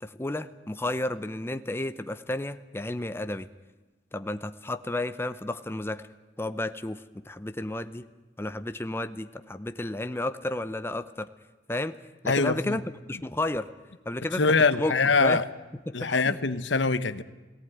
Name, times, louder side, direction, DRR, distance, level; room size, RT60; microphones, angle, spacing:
voice 1, 0.0-3.5 4.1-6.0 6.4-8.1 8.4-11.3 11.7-12.0 12.2-13.7 14.1-14.4 14.7-14.9 15.2-15.4 15.9-16.4, left 1 dB, 15° left, 10 dB, 0.7 m, -32 dB
voice 2, 12.3-12.8 14.4-15.4 15.9-17.2, left 4 dB, 80° left, 13 dB, 1.0 m, -23 dB
18.0 x 18.0 x 9.2 m, 1.2 s
head